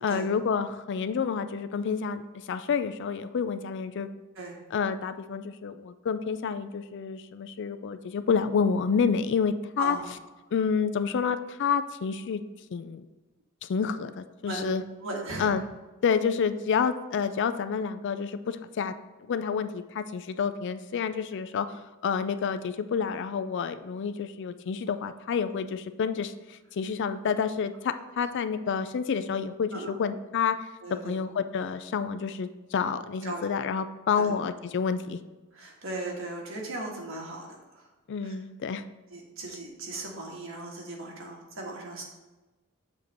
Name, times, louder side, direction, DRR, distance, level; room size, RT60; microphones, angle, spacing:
voice 1, 0.0-4.1 4.7-10.0 10.5-12.4 12.7-13.1 13.6-14.8 15.4-15.6 16.0-18.9 19.3-30.7 31.0-35.2 38.1-38.8, left 6 dB, 60° left, 11 dB, 0.4 m, -29 dB
voice 2, 15.0-15.5 29.7-29.9 30.8-31.1 33.2-33.4 34.2-34.3 35.5-37.5 37.7-37.9 38.2-38.3 39.1-42.0, right 2 dB, 70° right, -1 dB, 1.5 m, -37 dB
7.1 x 3.2 x 5.7 m, 1.1 s
head